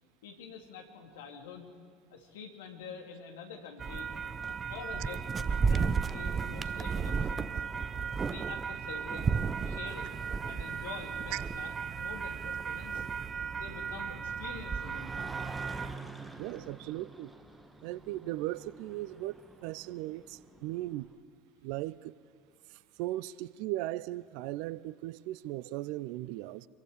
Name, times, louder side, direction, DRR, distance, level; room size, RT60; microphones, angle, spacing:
voice 1, 0.2-1.7 2.1-4.1 4.5-7.6 8.2-9.4 9.6-13.1 13.5-15.3, left 6 dB, 70° left, 3 dB, 2.6 m, -47 dB
sound 1, 3.8-16.0, right 5 dB, 25° right, 0.7 m, -34 dB
sound 2, 11.7-21.1, right 3 dB, 10° right, 1.5 m, -49 dB
voice 2, 16.4-17.3 17.8-19.3 19.6-21.1 21.6-22.1 22.7-26.7, right 16 dB, 60° right, 20 dB, 0.5 m, -37 dB
26.5 x 22.0 x 5.0 m, 2.1 s
figure-of-eight pair, 70°, 0 cm